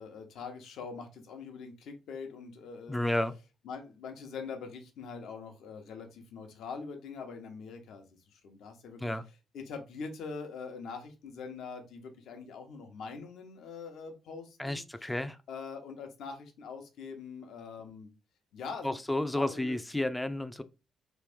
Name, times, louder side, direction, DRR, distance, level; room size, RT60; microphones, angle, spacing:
voice 1, 0.0-3.0 3.6-9.1 9.5-14.8 15.5-18.1 18.5-19.0 19.3-19.8, left 5 dB, 75° left, 0.9 m, -43 dB
voice 2, 2.9-3.3 9.0-9.2 14.6-15.4 18.8-20.6, left 1 dB, 10° left, 0.4 m, -31 dB
3.1 x 2.5 x 3.5 m
cardioid pair, 90°, 0 cm